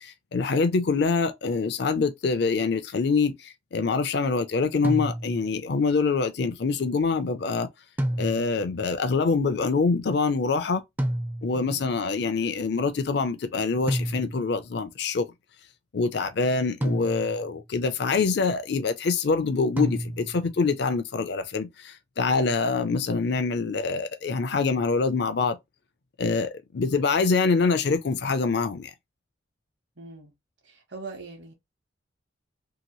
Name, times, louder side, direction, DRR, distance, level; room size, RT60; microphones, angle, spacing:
voice 1, 0.0-7.7 8.2-10.8 11.4-15.3 15.9-25.6 26.2-28.9, left 4 dB, 60° left, 0.5 m, -25 dB
sound 1, 4.8-5.6 8.0-8.7 11.0-11.8 13.9-14.6 16.8-17.6 19.8-20.5, right 1 dB, 10° right, 0.4 m, -30 dB
voice 2, 30.0-30.3 30.6-31.5, right 3 dB, 70° right, 1.1 m, -41 dB
2.9 x 2.6 x 2.9 m
head